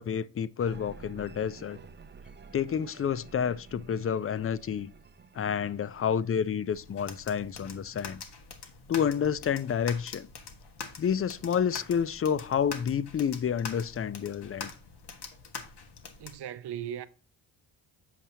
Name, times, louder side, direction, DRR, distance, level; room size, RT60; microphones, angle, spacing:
voice 1, 0.0-1.8 2.5-4.9 5.4-8.2 8.9-10.3 11.0-14.7, left 8 dB, 30° left, 0.4 m, -29 dB
sound 1, 0.6-6.9, right 5 dB, 25° right, 0.7 m, -51 dB
sound 2, 6.7-16.4, left 5 dB, 55° left, 1.4 m, -44 dB
voice 2, 16.2-17.1, right 10 dB, 55° right, 0.7 m, -37 dB
7.5 x 5.5 x 2.8 m
supercardioid pair, 55°, 47 cm